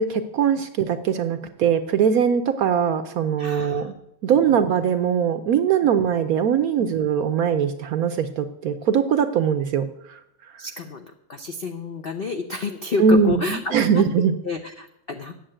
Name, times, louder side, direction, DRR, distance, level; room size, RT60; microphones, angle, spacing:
voice 1, 0.0-3.9 4.2-10.2 13.0-14.3, right 7 dB, 65° right, 10 dB, 0.9 m, -21 dB
voice 2, 3.4-3.9 4.5-4.6 6.8-6.9 10.6-14.0 14.4-15.3, left 4 dB, 70° left, 5 dB, 0.5 m, -30 dB
8.8 x 7.3 x 8.8 m, 0.78 s
omnidirectional pair, 2.0 m